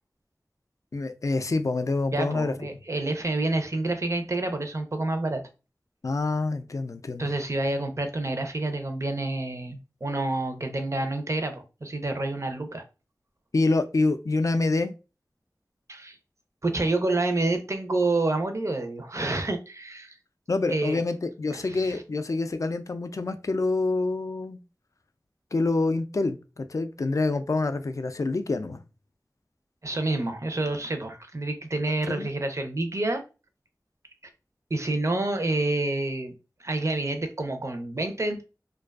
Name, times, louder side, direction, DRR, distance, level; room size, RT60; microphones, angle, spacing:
voice 1, 0.9-2.5 6.0-7.3 13.5-14.9 20.5-24.6 25.5-28.8 32.1-32.3, left 3 dB, 50° left, 0.3 m, -26 dB
voice 2, 2.1-5.4 7.2-12.8 15.9-16.2 16.6-20.2 20.7-21.0 21.6-22.0 29.8-33.2 34.7-36.3 36.6-38.4, right 2 dB, 45° right, 0.5 m, -28 dB
2.4 x 2.3 x 2.3 m
wide cardioid pair, 45°, 7 cm